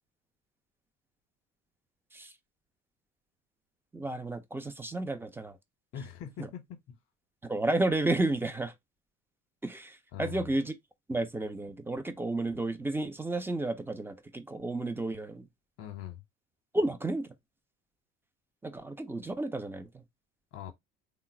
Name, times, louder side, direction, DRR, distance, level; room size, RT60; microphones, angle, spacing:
voice 1, 3.9-5.6 6.4-6.5 7.4-8.7 9.6-10.7 11.1-15.5 16.7-17.3 18.6-20.0, right 2 dB, 5° right, 0.4 m, -32 dB
voice 2, 5.9-6.9 10.1-10.5 15.8-16.2 20.5-20.7, left 10 dB, 35° left, 0.8 m, -42 dB
3.7 x 2.0 x 4.2 m
figure-of-eight pair, 60°, 38 cm